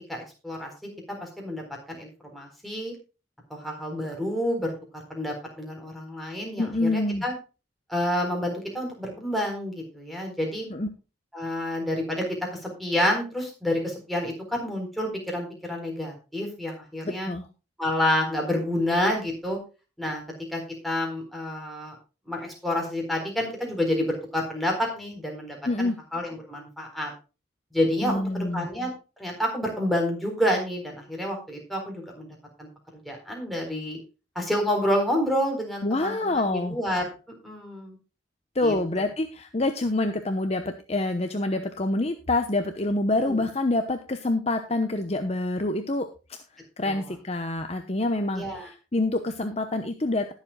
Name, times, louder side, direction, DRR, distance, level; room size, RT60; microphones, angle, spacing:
voice 1, 0.1-0.7 1.2-2.9 3.5-7.3 7.9-10.7 11.3-12.4 12.6-17.3 17.8-19.6 20.0-20.2 20.5-21.9 22.3-27.1 27.7-28.9 29.2-34.0 34.4-37.1 37.4-38.0 38.6-38.7 43.2-43.4 46.8-47.0 48.3-48.7, left 1 dB, ahead, 0 dB, 4.1 m, -29 dB
voice 2, 6.6-7.2 10.7-10.9 17.0-17.5 25.6-25.9 28.0-28.7 35.8-36.8 38.5-46.1 46.5-50.3, left 2 dB, 35° left, 6 dB, 0.9 m, -27 dB
20.0 x 7.5 x 2.3 m, 0.31 s
head